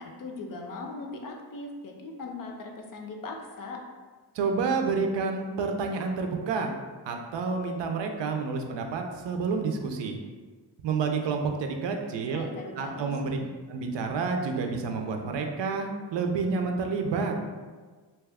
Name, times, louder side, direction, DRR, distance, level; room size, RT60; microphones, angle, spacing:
voice 1, 0.0-3.8 12.3-13.5, left 3 dB, 50° left, 2 dB, 0.5 m, -39 dB
voice 2, 4.3-6.7 7.1-10.2 10.8-12.5 12.8-13.4 13.7-17.3, right 4 dB, 80° right, 4 dB, 0.5 m, -29 dB
2.8 x 2.3 x 3.4 m, 1.4 s
cardioid pair, 105°, 43 cm